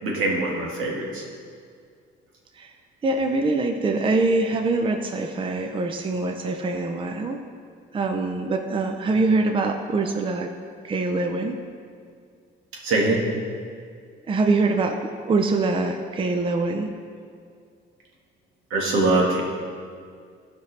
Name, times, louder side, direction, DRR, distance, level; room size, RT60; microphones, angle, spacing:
voice 1, 0.0-1.2 12.8-13.3 18.7-19.4, right 2 dB, 80° right, -2 dB, 1.7 m, -22 dB
voice 2, 3.0-7.4 7.9-10.5 10.8-11.6 14.3-17.0, right 3 dB, 25° right, 4 dB, 0.5 m, -24 dB
13.5 x 5.2 x 3.3 m, 2.2 s
cardioid pair, 120°, 20 cm